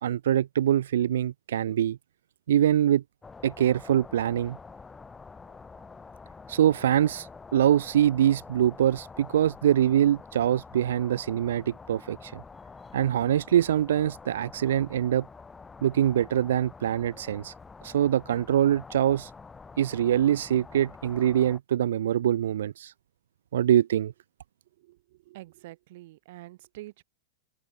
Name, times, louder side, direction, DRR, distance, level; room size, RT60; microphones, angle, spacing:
voice 1, 0.0-2.0 2.5-3.0 3.4-4.6 6.5-12.4 12.9-15.3 15.8-17.5 17.8-19.3 19.8-22.9 23.5-24.1, right 11 dB, 80° right, 0.4 m, -24 dB
sound 1, 3.2-21.6, left 4 dB, 10° left, 1.2 m, -47 dB
voice 2, 24.8-27.0, right 18 dB, 45° right, 0.8 m, -47 dB
open air
supercardioid pair, 175°, 0 cm